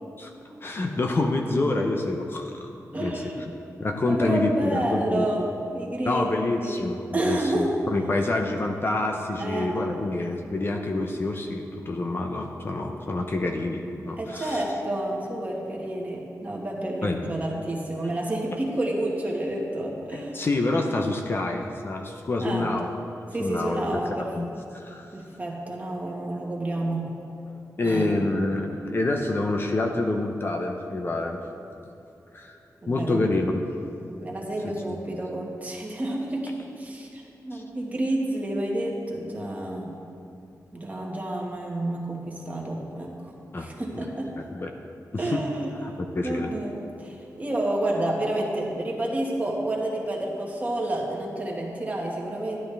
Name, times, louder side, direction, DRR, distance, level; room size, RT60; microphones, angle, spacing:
voice 1, 0.6-2.7 3.0-3.3 3.8-5.3 6.1-14.6 17.0-17.3 20.1-22.9 23.4-24.0 24.4-25.1 27.5-31.4 32.3-32.6 32.9-33.6 37.5-37.6 43.5-43.7 44.0-44.1 44.4-44.7 45.1-45.4 45.8-46.5, left 2 dB, 35° left, 3 dB, 0.7 m, -27 dB
voice 2, 2.9-3.4 4.0-6.3 6.6-6.8 7.1-7.7 9.4-9.7 14.2-20.4 22.4-22.7 23.3-24.3 25.1-27.1 27.8-28.3 32.8-33.2 34.2-40.0 40.7-43.3 43.6-44.4 45.2-45.8 46.1-52.6, right 1 dB, 25° right, -2 dB, 1.6 m, -29 dB
12.5 x 11.0 x 3.4 m, 2.7 s
wide cardioid pair, 140°, 6 cm